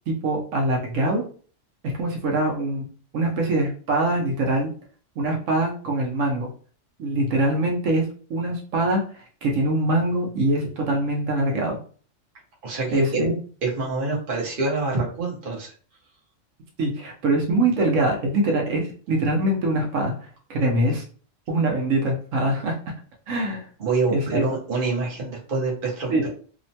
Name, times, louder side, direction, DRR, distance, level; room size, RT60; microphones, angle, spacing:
voice 1, 0.1-1.2 1.8-2.9 3.1-4.7 5.2-6.5 7.0-11.8 12.9-13.3 16.8-20.1 20.5-21.0 21.5-22.7 23.3-23.6 24.1-24.4 26.1-26.3, right 1 dB, 85° right, 0 dB, 1.1 m, -23 dB
voice 2, 12.6-13.2 13.6-15.7 23.8-26.1, right 3 dB, 45° right, -3 dB, 1.0 m, -26 dB
2.9 x 2.1 x 2.7 m, 0.42 s
omnidirectional pair, 1.3 m